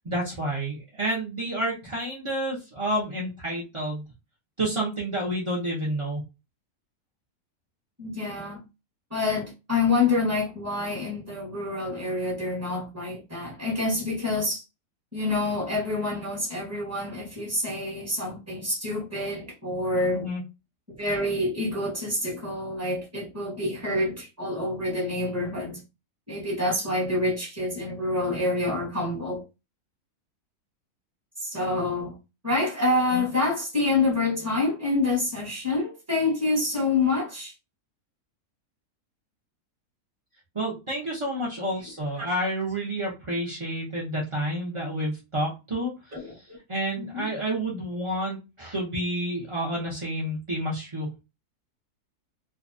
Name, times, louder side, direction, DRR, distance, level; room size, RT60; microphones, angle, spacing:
voice 1, 0.0-4.0 4.6-6.2 20.1-20.4 33.1-33.3 40.5-45.9 46.7-51.1, right 1 dB, 50° right, 0.3 m, -29 dB
voice 2, 8.0-8.6 9.1-14.6 15.1-20.3 20.9-25.8 26.3-29.4 31.4-32.2 32.4-37.5 42.2-42.3 46.1-46.6 47.0-47.3, left 2 dB, 15° right, 0.8 m, -27 dB
2.7 x 2.2 x 2.5 m
omnidirectional pair, 1.7 m